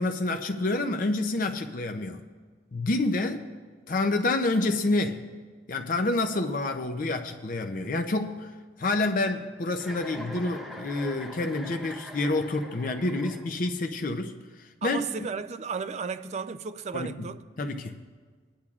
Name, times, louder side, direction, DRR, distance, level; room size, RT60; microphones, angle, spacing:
voice 1, 0.0-2.2 2.7-3.5 3.9-5.3 5.7-8.5 8.8-15.3 16.9-17.3 17.6-18.0, left 2 dB, 50° left, 0.6 m, -28 dB
Chuckle chortle, 9.8-13.8, equal, ahead, 1.2 m, -43 dB
voice 2, 14.8-17.4, right 5 dB, 40° right, 0.4 m, -34 dB
20.5 x 10.0 x 2.4 m
head